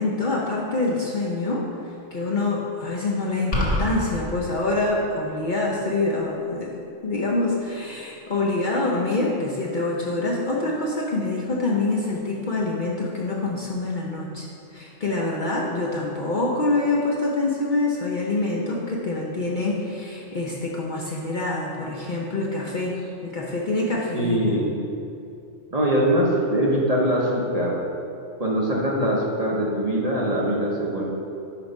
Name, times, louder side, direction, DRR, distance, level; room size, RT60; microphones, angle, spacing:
voice 1, 0.0-6.7 7.0-14.5 14.7-23.0 23.2-24.6, left 2 dB, 50° left, -3 dB, 0.7 m, -26 dB
sound 1, 3.5-4.0, equal, 30° left, 1.1 m, -23 dB
voice 2, 24.1-24.7 25.7-27.7 28.4-31.0, right 1 dB, 35° right, -4 dB, 0.7 m, -22 dB
5.7 x 4.6 x 5.2 m, 2.6 s
omnidirectional pair, 1.3 m